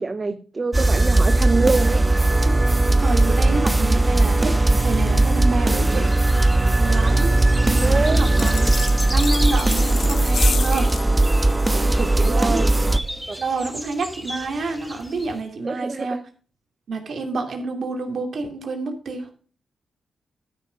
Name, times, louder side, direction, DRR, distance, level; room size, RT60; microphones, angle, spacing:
voice 1, 0.0-2.0 7.6-8.2 12.2-12.7 13.3-13.4 15.6-16.2, right 3 dB, 35° right, 11 dB, 0.6 m, -25 dB
sound 1, 0.7-13.0, right 2 dB, 20° right, 1.2 m, -18 dB
voice 2, 3.0-4.5 4.8-6.1 6.8-7.4 7.6-8.7 9.1-11.0 11.7-12.6 13.4-16.2 16.9-19.3, right 3 dB, 65° right, 4 dB, 2.7 m, -28 dB
sound 2, 5.9-15.4, equal, ahead, 1.4 m, -35 dB
sound 3, 8.4-11.1, left 6 dB, 65° left, 1.3 m, -31 dB
12.5 x 6.5 x 6.4 m, 0.42 s
cardioid pair, 70°, 0 cm